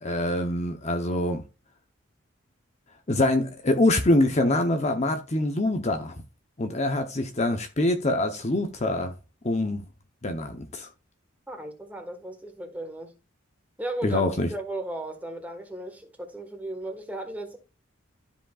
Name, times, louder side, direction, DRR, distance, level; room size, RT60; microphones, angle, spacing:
voice 1, 0.0-1.4 3.1-6.1 6.6-9.1 9.4-9.8 10.2-10.9 14.0-14.5, left 1 dB, 30° left, 0.8 m, -24 dB
voice 2, 11.5-13.2 13.8-14.2 14.5-17.6, right 1 dB, 5° right, 1.5 m, -35 dB
12.5 x 5.2 x 2.4 m
head